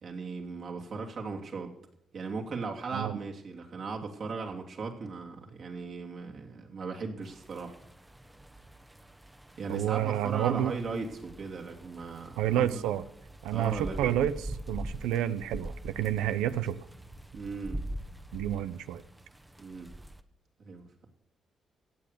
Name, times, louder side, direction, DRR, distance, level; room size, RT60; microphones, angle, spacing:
voice 1, 0.0-1.7 2.1-7.7 9.6-12.9 13.5-14.1 17.3-17.8 19.6-19.9 20.6-20.9, right 4 dB, 60° right, 1 dB, 2.9 m, -37 dB
sound 1, 7.2-20.2, right 1 dB, 15° right, 1.2 m, -44 dB
voice 2, 9.7-10.8 12.4-13.0 13.4-16.8 18.3-19.0, right 11 dB, 90° right, 13 dB, 0.6 m, -29 dB
16.5 x 7.8 x 6.7 m, 0.76 s
supercardioid pair, 50°, 0 cm